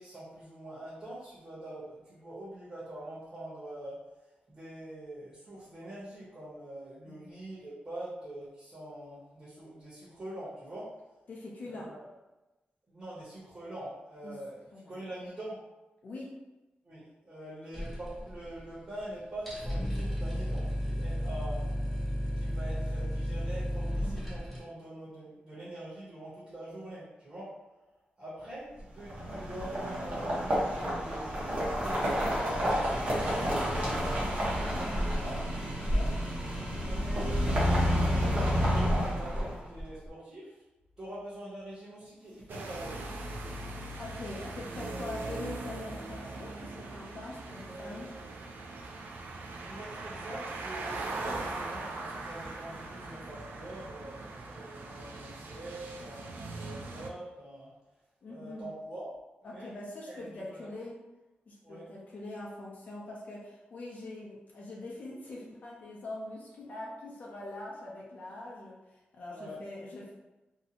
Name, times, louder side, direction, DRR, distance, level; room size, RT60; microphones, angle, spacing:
voice 1, 0.0-4.0 4.5-10.9 11.6-12.1 12.9-15.6 16.8-21.7 22.2-27.6 28.2-35.5 36.8-40.6 41.0-43.1 47.7-48.3 49.7-57.7 58.3-59.2 59.4-59.7 60.1-60.7 61.6-61.9 69.3-69.6, right 1 dB, 30° right, -11 dB, 0.9 m, -44 dB
voice 2, 11.3-11.9 14.2-14.3 14.7-15.0 16.0-16.3 35.8-36.1 44.0-48.1 58.2-58.7 59.4-61.0 61.5-70.1, left 2 dB, 50° left, -4 dB, 0.5 m, -43 dB
sound 1, 17.7-18.7 19.0-19.1 19.4-24.6, equal, ahead, 0.6 m, -33 dB
sound 2, 29.0-39.8, equal, 45° right, 0.8 m, -29 dB
sound 3, 42.5-57.1, right 2 dB, 85° right, 0.3 m, -40 dB
2.7 x 2.1 x 2.7 m, 1.1 s
wide cardioid pair, 155°, 3 cm